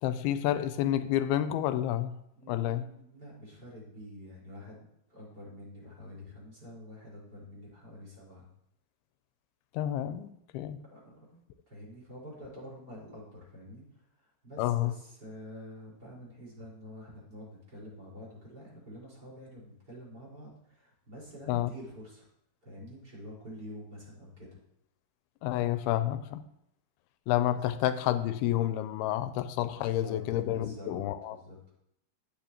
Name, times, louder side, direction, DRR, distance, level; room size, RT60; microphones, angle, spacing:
voice 1, 0.0-2.2 2.5-2.9 9.7-10.8 14.6-14.9 21.5-21.7 25.4-26.4 27.3-31.4, left 12 dB, 85° left, 11 dB, 2.5 m, -29 dB
voice 2, 2.4-8.5 10.9-11.4 11.7-22.3 22.6-24.6 27.5-27.6 29.7-30.2 30.5-31.6, equal, 25° right, -4 dB, 4.9 m, -47 dB
15.5 x 9.3 x 2.9 m, 0.75 s
omnidirectional pair, 4.5 m